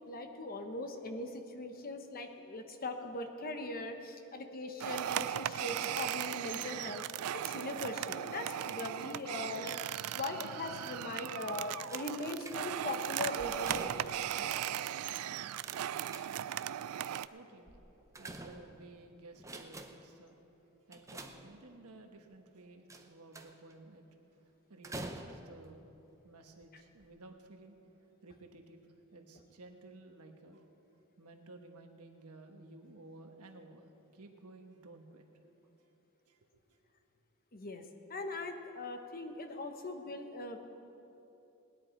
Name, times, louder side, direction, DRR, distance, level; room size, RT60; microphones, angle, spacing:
voice 1, 0.1-7.0 7.3-9.7 10.1-14.6 26.7-26.8 37.5-37.8 38.1-40.6, left 2 dB, 40° left, 6 dB, 1.0 m, -40 dB
sound 1, 4.8-17.3, right 11 dB, 75° right, 0.3 m, -37 dB
sound 2, 11.9-12.9 13.4-14.3 15.6-16.7 17.7-19.0 19.3-20.2 20.9-21.9 22.9-23.7 24.8-25.7 26.5-26.6 27.0-27.1, right 2 dB, 15° right, 0.7 m, -47 dB
voice 2, 17.3-17.8 18.2-20.4 20.9-24.2 24.7-25.9 26.2-28.8 29.1-30.7 31.2-33.8 34.1-35.2 36.3-36.8, right 2 dB, 90° right, 4 dB, 1.2 m, -54 dB
19.5 x 10.0 x 4.5 m, 2.9 s
head